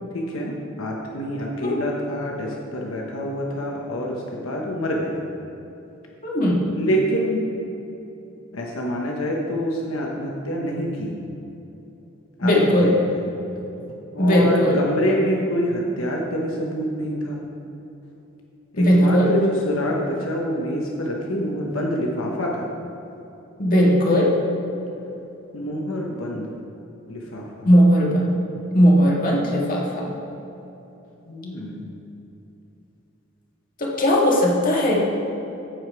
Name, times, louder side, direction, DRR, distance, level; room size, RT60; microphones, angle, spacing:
voice 1, 0.1-5.2 6.7-7.4 8.5-11.2 12.4-12.5 12.8-13.2 14.1-17.5 18.7-22.7 25.5-26.5 27.1-27.7 31.3-31.8, equal, 85° left, -1 dB, 1.1 m, -26 dB
voice 2, 6.2-6.7 12.4-12.9 14.2-14.8 18.8-19.3 23.6-24.3 27.6-28.4 28.7-30.1 33.8-34.9, equal, 45° left, -3 dB, 1.9 m, -18 dB
15.0 x 5.0 x 4.7 m, 3.0 s
head